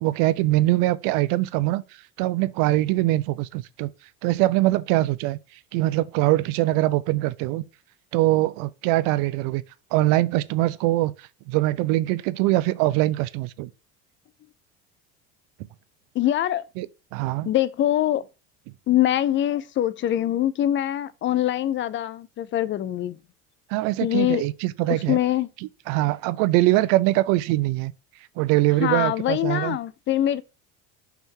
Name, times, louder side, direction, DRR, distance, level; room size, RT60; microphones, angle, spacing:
voice 1, 0.0-1.8 2.2-3.9 4.2-5.4 5.7-7.6 8.1-9.6 9.9-11.1 11.5-13.7 16.8-16.9 17.1-17.5 23.7-25.2 25.9-27.9 28.4-29.8, right 17 dB, 70° right, 0.6 m, -22 dB
voice 2, 16.1-16.6 17.5-18.2 18.9-23.2 24.0-24.4 24.9-25.5 28.8-30.4, left 12 dB, 35° left, 0.4 m, -23 dB
5.7 x 3.6 x 4.6 m
supercardioid pair, 115°, 34 cm